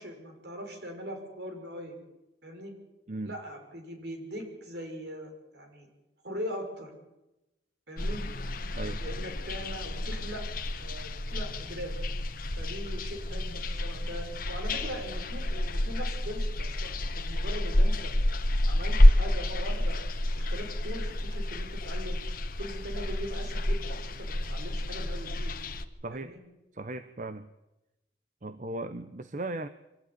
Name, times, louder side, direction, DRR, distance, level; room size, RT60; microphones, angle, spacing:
voice 1, 0.0-2.0 2.4-2.7 3.2-5.9 6.2-6.9 7.9-8.2 9.0-10.5 10.7-12.0 12.6-18.1 18.7-20.0 20.3-22.2 22.6-25.5 26.1-26.4, equal, 65° right, 3 dB, 6.5 m, -41 dB
sound 1, 8.0-25.8, left 1 dB, 50° left, 1.4 m, -28 dB
voice 2, 26.0-26.4 26.7-27.5 28.4-29.7, right 2 dB, 45° right, 11 dB, 0.9 m, -37 dB
25.0 x 15.0 x 9.9 m, 0.97 s
head